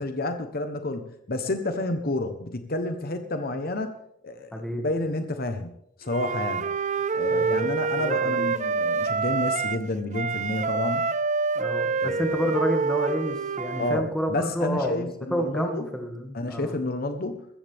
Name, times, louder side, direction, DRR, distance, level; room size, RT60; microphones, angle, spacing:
voice 1, 0.0-4.0 4.2-4.5 4.8-5.7 6.0-6.7 7.1-11.1 12.0-12.6 13.8-15.9 16.3-17.5, left 2 dB, 50° left, 7 dB, 1.1 m, -30 dB
voice 2, 4.5-4.9 7.3-8.5 11.6-16.8, equal, 5° left, 2 dB, 2.1 m, -30 dB
Wind instrument woodwind instrument, 6.1-9.8 10.1-14.0, right 4 dB, 40° right, 0.5 m, -27 dB
22.0 x 14.5 x 3.6 m, 0.77 s
head